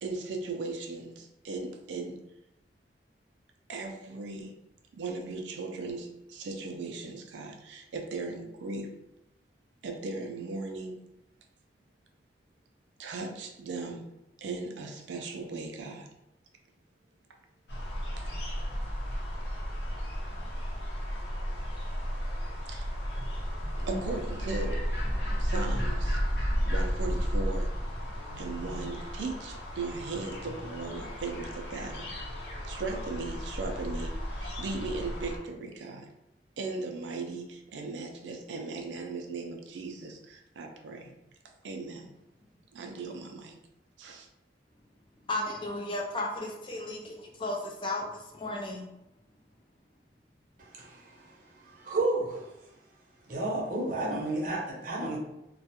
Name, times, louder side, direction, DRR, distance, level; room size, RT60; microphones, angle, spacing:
voice 1, 0.0-2.2 3.7-4.5 4.9-8.9 9.8-11.0 13.0-14.0 14.4-16.1 18.2-18.3 22.7-22.9 23.9-24.8 25.4-26.2 26.7-27.7 28.4-32.1 32.6-36.1 36.6-41.2 41.6-42.1 42.7-43.6 44.0-44.3, right 3 dB, 85° right, 0.4 m, -37 dB
sound 1, 17.7-35.4, equal, 70° left, 0.7 m, -33 dB
voice 2, 45.3-48.0 48.3-48.8, left 2 dB, 30° left, 0.3 m, -34 dB
voice 3, 50.6-51.3 51.6-52.4 53.3-55.2, right 2 dB, 50° right, 0.6 m, -31 dB
2.3 x 2.1 x 2.7 m
head